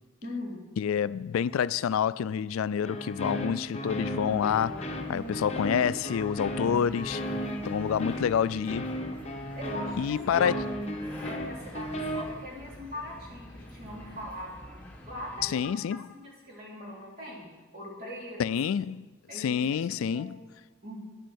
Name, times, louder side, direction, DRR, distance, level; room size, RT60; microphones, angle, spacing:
voice 1, 0.2-0.6 5.1-5.9 7.8-8.3 9.6-10.8 11.2-14.6 15.0-15.7 16.0-17.5 17.7-18.4 18.8-18.9 19.3-20.3 20.8-21.0, left 1 dB, 45° right, 3.2 m, -41 dB
voice 2, 0.8-7.2 7.6-8.9 10.0-10.6 15.4-16.1 18.4-20.4, left 8 dB, 85° left, 0.3 m, -28 dB
sound 1, 2.8-12.2, equal, 30° left, 0.8 m, -35 dB
sound 2, 3.9-15.5, left 1 dB, 10° left, 1.4 m, -47 dB
9.9 x 7.5 x 7.0 m
head